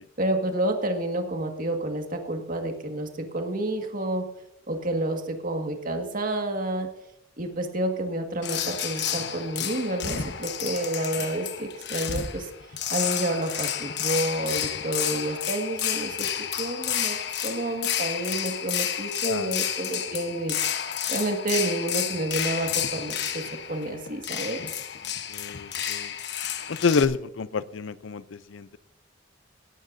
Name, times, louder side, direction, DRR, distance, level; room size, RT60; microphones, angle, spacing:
voice 1, 0.2-4.3 4.7-6.9 7.4-12.5 12.9-16.3 16.6-17.2 17.4-20.8 21.1-23.4 23.7-24.6, right 1 dB, 45° right, 4 dB, 1.8 m, -29 dB
sound 1, 8.4-27.0, left 9 dB, 60° left, 1.0 m, -31 dB
voice 2, 19.2-19.6 25.3-26.1 26.7-28.8, left 5 dB, 85° left, 16 dB, 0.5 m, -28 dB
17.5 x 13.0 x 2.6 m, 0.85 s
head